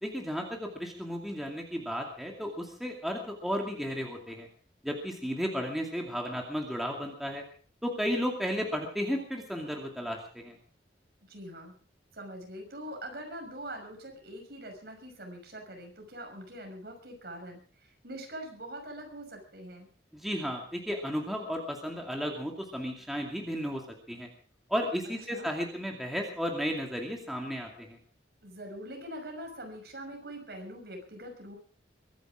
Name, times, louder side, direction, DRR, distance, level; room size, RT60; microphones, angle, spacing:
voice 1, 0.0-4.5 4.8-7.4 7.8-10.6 20.1-23.8 24.1-24.3 24.7-28.0, equal, ahead, 0 dB, 2.5 m, -34 dB
voice 2, 11.3-11.7 12.1-19.9 25.3-25.5 28.4-31.6, right 1 dB, 60° right, 3 dB, 6.1 m, -43 dB
23.0 x 11.0 x 5.0 m, 0.43 s
head